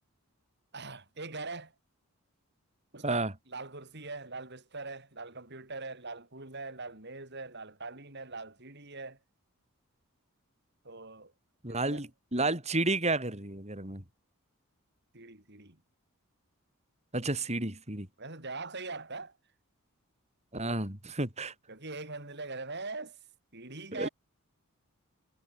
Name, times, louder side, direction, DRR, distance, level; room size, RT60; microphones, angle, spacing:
voice 1, 0.7-1.7 2.9-9.2 10.8-11.3 11.7-12.0 15.1-15.8 18.2-19.4 21.7-23.2 23.5-24.1, right 3 dB, 50° right, 7.4 m, -42 dB
voice 2, 11.6-14.0 17.1-18.1 20.5-21.5 23.9-24.1, right 2 dB, 30° right, 5.3 m, -31 dB
head